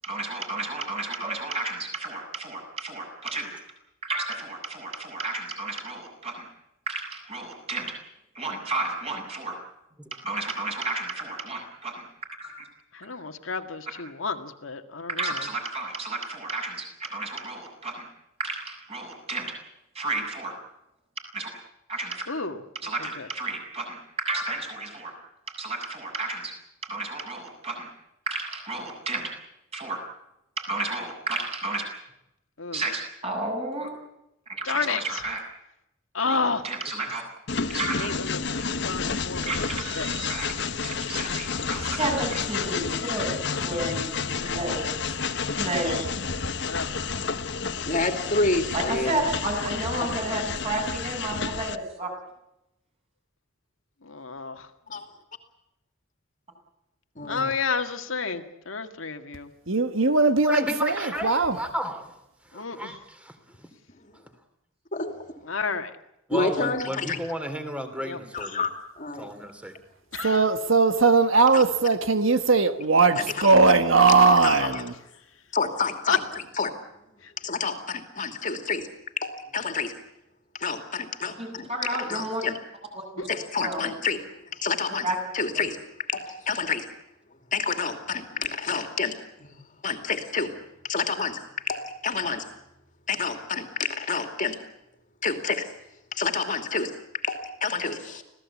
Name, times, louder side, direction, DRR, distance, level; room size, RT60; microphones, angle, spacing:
voice 1, 0.0-3.5 4.0-6.5 6.9-7.9 8.3-9.6 10.1-12.1 12.4-12.5 15.1-18.1 18.4-19.5 19.9-20.5 21.3-21.5 21.9-22.2 22.8-25.1 25.6-26.5 26.8-27.9 28.3-29.3 29.7-30.0 30.6-31.8 32.7-33.9 34.5-35.4 36.3-37.2 37.7-38.1 39.5-40.5 40.8-43.3 43.6-44.8 45.5-45.9 48.7-52.1 81.4-82.4 82.9-83.3 83.6-83.9 85.0-85.2 85.5-85.6, right 2 dB, 30° right, 7.6 m, -32 dB
voice 2, 12.9-15.5 22.3-23.3 32.6-32.9 34.6-35.2 36.1-36.6 37.9-38.5 38.8-40.4 46.6-47.1 54.0-54.6 57.3-59.5 62.5-62.9 65.4-65.9 68.0-68.2 70.1-70.5 76.1-76.2 77.2-77.3 83.2-83.3 88.3-88.5, left 5 dB, 75° left, 1.9 m, -31 dB
Train, 37.5-51.8, left 5 dB, 60° left, 1.3 m, -30 dB
voice 3, 47.9-49.2 54.9-55.0 57.2-57.5 64.9-65.2 66.3-67.2 68.3-68.7 69.0-69.3 71.5-71.6 73.2-73.5 74.3-74.8 75.5-76.7 77.4-78.9 79.2-79.9 80.5-81.7 82.0-82.6 83.3-84.2 84.5-85.1 85.3-86.9 87.5-89.6 89.8-90.5 90.8-92.4 93.1-94.6 95.2-95.7 96.1-98.2, left 4 dB, 40° left, 2.6 m, -29 dB
voice 4, 59.7-61.6 70.2-74.9, right 4 dB, 70° right, 1.5 m, -19 dB
voice 5, 60.4-62.1 62.5-63.3 66.3-68.6 69.2-69.7, equal, 5° right, 3.0 m, -33 dB
26.5 x 17.5 x 8.5 m
head